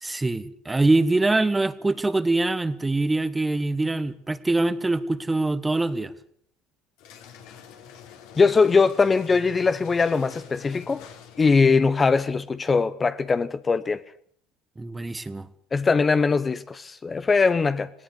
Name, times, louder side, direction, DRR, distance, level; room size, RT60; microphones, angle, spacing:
voice 1, 0.0-6.1 14.8-15.5, right 2 dB, 15° right, 1.4 m, -24 dB
sound 1, 7.0-11.7, left 8 dB, 70° left, 4.1 m, -46 dB
voice 2, 8.4-11.0 11.4-14.0 15.7-17.9, left 4 dB, 25° left, 0.8 m, -21 dB
18.5 x 18.0 x 8.1 m
supercardioid pair, 95°, 0 cm